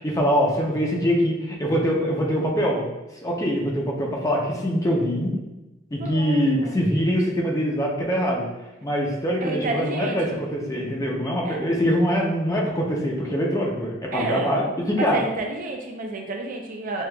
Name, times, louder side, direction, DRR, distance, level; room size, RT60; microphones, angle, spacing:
voice 1, 0.0-2.9 3.2-5.4 5.9-8.5 8.8-15.2, equal, 20° left, -2 dB, 0.6 m, -23 dB
voice 2, 6.0-6.8 9.4-10.4 11.4-11.6 14.1-14.5 14.9-17.1, right 2 dB, 45° right, 2 dB, 0.5 m, -30 dB
6.2 x 2.4 x 2.3 m, 1.0 s
head